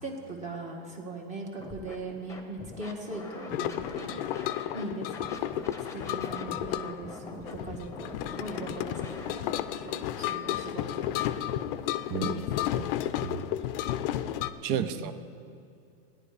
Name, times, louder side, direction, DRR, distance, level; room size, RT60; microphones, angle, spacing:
voice 1, 0.0-4.2 4.7-5.4 5.9-11.7 12.2-12.3 12.7-12.8 14.7-15.1, right 2 dB, 20° right, -1 dB, 1.6 m, -40 dB
Scratching (performance technique), 1.6-1.9 2.3-4.8 5.1-9.3, left 3 dB, 10° left, 1.1 m, -43 dB
sound 1, 3.5-14.5, left 12 dB, 60° left, 0.6 m, -32 dB
voice 2, 12.1-12.4 12.7-12.9 13.2-13.5 14.6-15.1, right 8 dB, 40° right, 11 dB, 0.8 m, -32 dB
16.5 x 10.5 x 5.0 m, 2.5 s
supercardioid pair, 145°, 32 cm